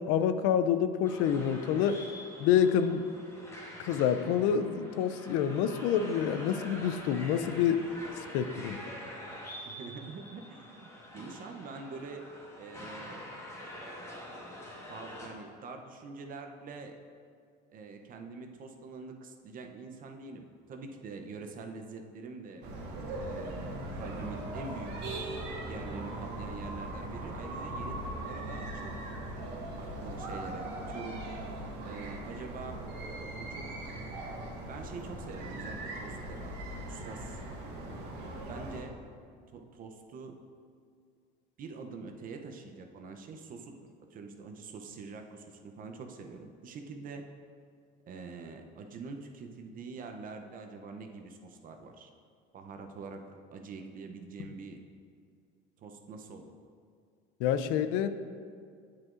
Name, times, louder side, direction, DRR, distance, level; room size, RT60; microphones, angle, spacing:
voice 1, 0.0-2.0 2.4-3.0 3.8-7.8 8.3-8.8 57.4-58.1, left 8 dB, 75° left, 11 dB, 0.5 m, -27 dB
sound 1, 1.0-15.3, left 1 dB, 15° left, 1.4 m, -46 dB
voice 2, 9.6-12.2 12.6-13.4 14.9-16.9 17.7-22.6 23.2-24.9 25.7-29.0 29.8-31.2 31.8-32.8 33.3-33.7 34.6-36.5 36.9-37.4 38.5-38.9 39.5-40.3 41.6-43.7 44.1-47.2 48.1-52.1 52.5-54.8 55.8-56.5, right 4 dB, 45° right, 4 dB, 0.6 m, -45 dB
sound 2, 22.6-38.8, right 1 dB, 60° right, 1.5 m, -39 dB
8.4 x 7.7 x 2.5 m, 2.2 s
supercardioid pair, 110°, 20 cm